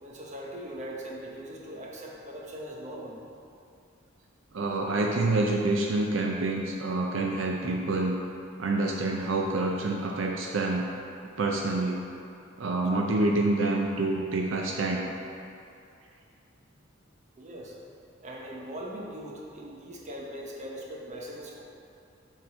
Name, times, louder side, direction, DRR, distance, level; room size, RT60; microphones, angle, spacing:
voice 1, 0.0-3.2 17.4-17.8 18.2-21.6, equal, 35° right, -2 dB, 1.0 m, -40 dB
voice 2, 4.5-8.2 8.6-10.9 11.4-12.1 12.6-15.1, right 2 dB, 70° right, 0 dB, 0.5 m, -27 dB
7.1 x 3.9 x 6.2 m, 2.5 s
head